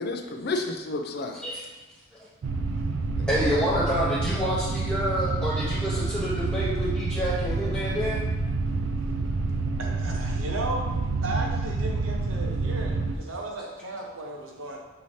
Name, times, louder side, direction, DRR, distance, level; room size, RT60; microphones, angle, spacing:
voice 1, 0.0-1.4 3.2-3.8, left 2 dB, 50° left, 5 dB, 0.4 m, -32 dB
sound 1, 2.4-13.2, right 3 dB, 65° right, 0.4 m, -28 dB
voice 2, 3.3-8.2, equal, 5° left, -11 dB, 0.8 m, -28 dB
voice 3, 9.4-10.8 11.2-14.8, right 2 dB, 80° right, 0 dB, 0.8 m, -35 dB
5.4 x 2.7 x 3.1 m, 1.2 s
head